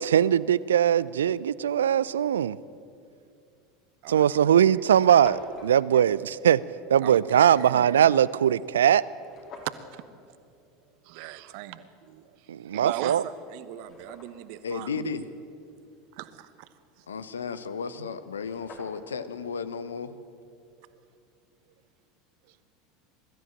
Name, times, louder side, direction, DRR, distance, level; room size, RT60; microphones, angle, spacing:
voice 1, 0.0-2.6 4.1-6.6 6.9-9.0 12.5-13.2, right 9 dB, 75° right, 19 dB, 0.4 m, -21 dB
sound 1, 3.4-3.6 4.3-4.4 4.6-4.7 4.9-5.7 9.2-9.8 12.8-12.9 13.4-14.6 17.9-18.0 18.2-19.2, left 4 dB, 45° left, 3.4 m, -47 dB
voice 2, 7.0-7.9 9.6-10.0 11.0-12.2 12.7-15.0 16.2-16.5 20.8-21.0, right 14 dB, 60° right, 13 dB, 1.1 m, -38 dB
voice 3, 14.6-15.3 17.1-20.2, left 5 dB, 80° left, 13 dB, 0.9 m, -34 dB
21.5 x 13.5 x 8.9 m, 2.5 s
figure-of-eight pair, 75°, 0 cm